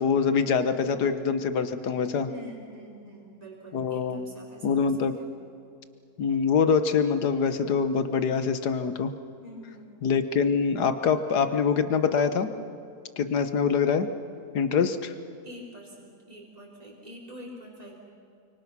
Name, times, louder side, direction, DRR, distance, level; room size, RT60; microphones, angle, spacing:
voice 1, 0.0-2.3 3.7-4.2 4.6-5.1 6.2-9.1 10.0-12.5 13.2-14.1 14.5-15.1, left 6 dB, 90° left, 10 dB, 1.7 m, -24 dB
voice 2, 2.3-5.4 9.4-9.9 15.4-18.0, equal, 25° right, -3 dB, 4.1 m, -45 dB
29.5 x 25.0 x 6.1 m, 2.5 s
omnidirectional pair, 1.7 m